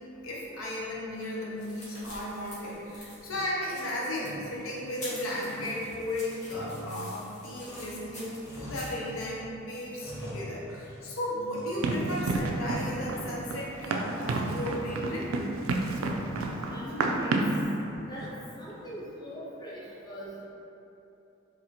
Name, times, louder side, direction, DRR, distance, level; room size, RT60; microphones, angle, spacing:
voice 1, 0.2-15.3 15.9-16.0, left 1 dB, 90° left, -5 dB, 0.6 m, -35 dB
sound 1, 1.2-9.3, equal, 35° left, 1.1 m, -47 dB
sound 2, 3.2-3.8 4.1-5.1 5.4-8.1 8.4-9.4 9.7-11.1 11.5-12.2 12.6-13.3 13.6-14.7 15.0-15.7 16.3-16.7 18.1-18.6, equal, 15° right, 0.6 m, -46 dB
Run, 11.8-17.6, right 2 dB, 85° right, 0.3 m, -30 dB
voice 2, 16.7-17.4 18.1-20.4, equal, 20° left, -8 dB, 0.7 m, -41 dB
4.1 x 2.4 x 2.8 m, 2.9 s
head